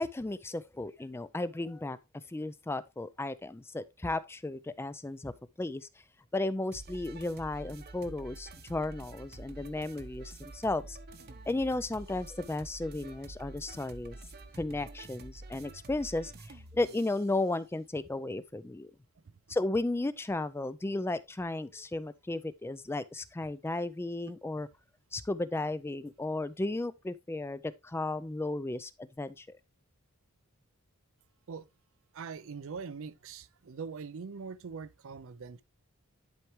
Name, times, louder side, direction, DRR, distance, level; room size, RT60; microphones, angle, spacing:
voice 1, 0.0-2.0 2.3-5.3 5.6-5.9 6.3-11.0 11.5-14.2 14.6-18.9 19.5-24.7 25.1-29.5, left 2 dB, 10° left, 0.3 m, -34 dB
sound 1, 6.7-17.3, right 2 dB, 45° right, 0.9 m, -48 dB
voice 2, 32.1-35.6, right 5 dB, 60° right, 0.5 m, -42 dB
10.5 x 4.7 x 3.0 m
head